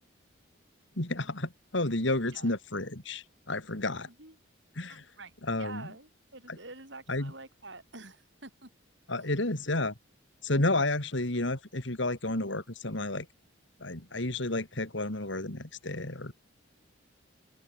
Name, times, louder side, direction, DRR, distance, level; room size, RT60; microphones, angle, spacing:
voice 1, 1.0-4.1 4.8-5.0 5.4-5.9 6.5-6.6 7.1-7.3 9.1-9.9 10.4-13.3 13.8-16.3, left 2 dB, 65° left, 2.8 m, -31 dB
voice 2, 3.9-4.4 4.9-5.3 5.6-8.7 9.2-9.3, right 3 dB, 60° right, 7.8 m, -48 dB
open air
head